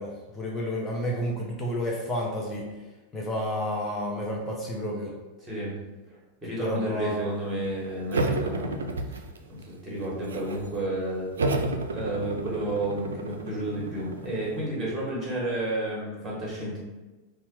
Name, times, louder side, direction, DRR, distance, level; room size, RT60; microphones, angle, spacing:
voice 1, 0.0-2.7 3.1-5.1 6.6-7.2, equal, 20° left, -2 dB, 0.6 m, -31 dB
voice 2, 6.4-9.2 9.5-11.6 11.9-16.8, right 1 dB, 10° right, -6 dB, 1.5 m, -31 dB
sound 1, 8.1-9.6 10.0-10.7 11.4-14.7, right 2 dB, 65° right, 0.3 m, -31 dB
4.1 x 2.3 x 3.0 m, 1.2 s
figure-of-eight pair, 90°, 0 cm